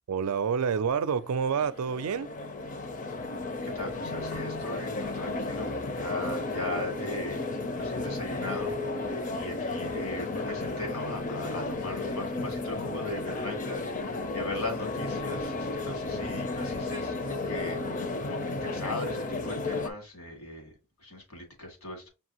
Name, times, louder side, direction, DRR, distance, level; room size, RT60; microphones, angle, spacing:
voice 1, 0.1-2.3, right 6 dB, 90° right, 0.4 m, -28 dB
sound 1, 1.1-19.9, left 2 dB, 35° left, 0.5 m, -33 dB
voice 2, 3.6-7.5 7.7-20.7 21.0-22.1, left 2 dB, 85° left, 2.2 m, -38 dB
5.4 x 2.7 x 2.9 m
head